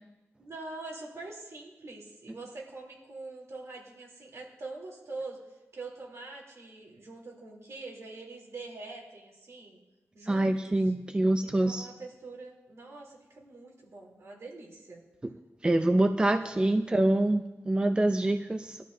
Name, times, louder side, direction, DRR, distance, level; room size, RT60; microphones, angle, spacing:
voice 1, 0.4-5.4 5.7-9.8 10.1-10.8 11.4-15.0 16.7-16.9, right 3 dB, 75° right, -2 dB, 3.3 m, -44 dB
voice 2, 10.3-11.9 15.6-18.8, right 1 dB, 20° right, 7 dB, 0.5 m, -25 dB
21.0 x 12.5 x 2.7 m, 0.99 s
wide cardioid pair, 120°, 5 cm